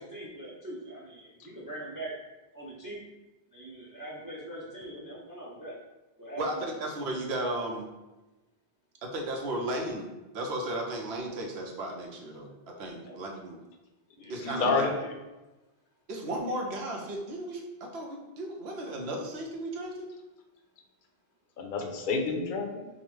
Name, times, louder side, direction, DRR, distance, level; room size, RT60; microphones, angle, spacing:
voice 1, 0.0-2.1 2.5-3.0 3.5-5.7 6.2-6.9 13.0-13.2 14.2-14.4, right 1 dB, 25° right, -4 dB, 0.5 m, -42 dB
voice 2, 6.4-7.9 9.0-10.1 10.3-13.6 14.3-14.9 16.1-20.1, right 1 dB, 85° right, 1 dB, 1.0 m, -35 dB
voice 3, 14.4-15.1 21.6-22.9, left 3 dB, 60° left, 3 dB, 0.7 m, -29 dB
5.2 x 2.0 x 3.1 m, 1.1 s
omnidirectional pair, 1.1 m